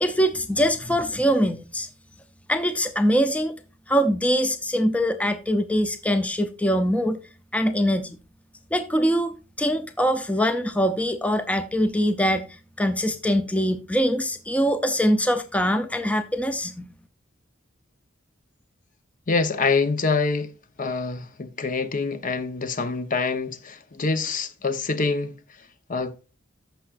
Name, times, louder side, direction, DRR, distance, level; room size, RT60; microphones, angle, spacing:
voice 1, 0.0-1.9 2.5-3.5 3.9-7.2 7.5-8.2 8.7-16.8, equal, 5° left, 0.6 m, -23 dB
voice 2, 19.3-20.5 20.8-25.3 25.9-26.1, left 4 dB, 45° left, 0.8 m, -25 dB
15.0 x 5.7 x 2.5 m
head